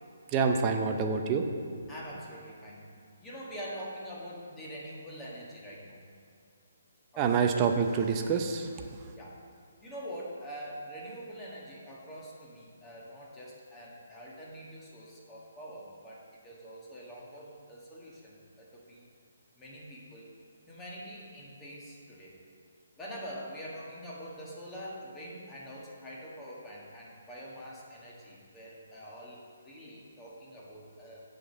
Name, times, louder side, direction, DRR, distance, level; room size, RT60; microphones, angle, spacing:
voice 1, 0.3-1.4 7.2-8.7, right 5 dB, 25° right, 4 dB, 0.6 m, -27 dB
voice 2, 1.9-2.9 3.2-6.0 7.1-7.6 9.1-9.4 9.8-19.0 19.6-20.4 20.7-22.4 23.0-31.2, equal, 15° left, -5 dB, 1.6 m, -45 dB
7.6 x 5.3 x 6.7 m, 2.4 s
hypercardioid pair, 150°, 0 cm